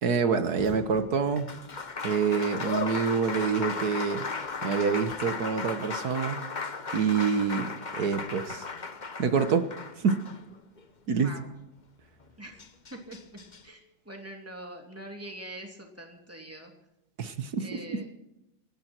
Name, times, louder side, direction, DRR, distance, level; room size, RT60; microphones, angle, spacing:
voice 1, 0.0-1.5 2.0-4.2 4.6-6.4 6.9-8.7 9.2-9.6 10.0-10.2 11.1-11.3 17.2-18.0, right 6 dB, 55° right, 10 dB, 1.5 m, -27 dB
Applause, 0.6-10.8 12.2-12.3 12.6-13.6, left 4 dB, 35° left, 0.8 m, -36 dB
voice 2, 12.9-16.7 17.6-18.1, right 1 dB, 5° right, 2 dB, 2.8 m, -44 dB
27.5 x 11.5 x 4.5 m, 0.89 s
omnidirectional pair, 2.2 m